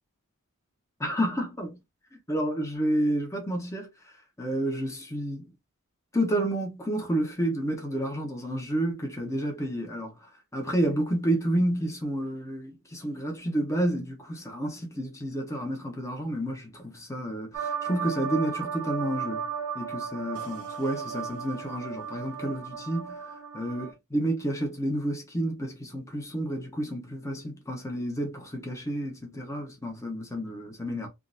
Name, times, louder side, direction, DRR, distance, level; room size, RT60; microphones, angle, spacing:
voice 1, 1.0-1.8 2.3-3.9 4.4-5.5 6.1-19.5 19.7-31.1, right 1 dB, 15° left, 1.0 m, -30 dB
sound 1, 17.5-23.9, right 7 dB, 85° right, 1.0 m, -35 dB
3.6 x 2.6 x 2.5 m
head